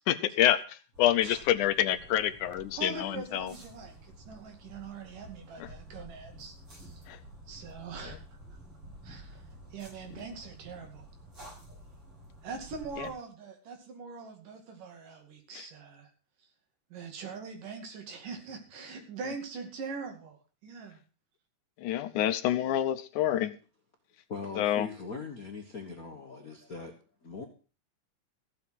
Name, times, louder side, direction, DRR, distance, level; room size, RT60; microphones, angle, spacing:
voice 1, 0.1-3.5 7.1-7.2 13.0-13.1 15.5-15.6 21.8-23.5 24.6-24.9, left 12 dB, 75° left, 2.1 m, -27 dB
sound 1, 0.9-13.1, right 1 dB, 40° right, 8.0 m, -51 dB
voice 2, 2.7-7.1 7.5-8.2 9.0-9.4 9.7-11.1 12.4-16.1 16.9-21.0, right 5 dB, 80° right, 3.9 m, -42 dB
voice 3, 24.3-27.0 27.2-27.4, left 4 dB, 45° left, 1.1 m, -40 dB
15.0 x 7.4 x 6.1 m
omnidirectional pair, 3.8 m